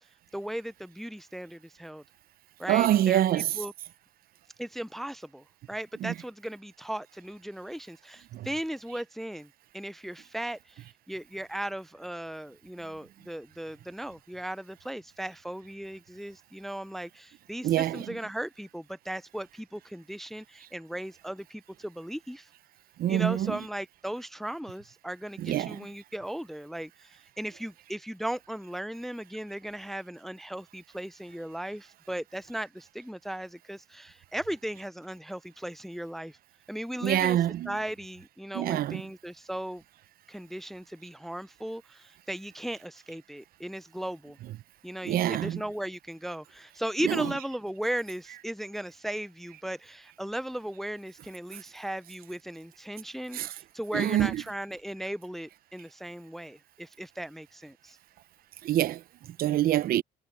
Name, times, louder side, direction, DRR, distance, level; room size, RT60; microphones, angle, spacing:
voice 1, 0.3-2.0 2.6-3.2 3.6-3.7 4.6-9.5 9.7-22.5 23.1-36.4 36.7-37.4 37.7-39.8 40.3-44.4 44.8-58.0, right 1 dB, ahead, 0.4 m, -37 dB
voice 2, 2.6-3.7 5.9-6.2 8.3-8.5 17.6-18.2 20.6-20.7 23.0-23.6 25.4-25.9 37.0-37.8 38.5-39.0 44.5-44.6 45.0-45.7 47.0-47.4 51.5-51.6 53.3-53.6 53.9-54.4 58.6-60.0, right 12 dB, 60° right, 0.7 m, -27 dB
cardioid pair, 110°, 17 cm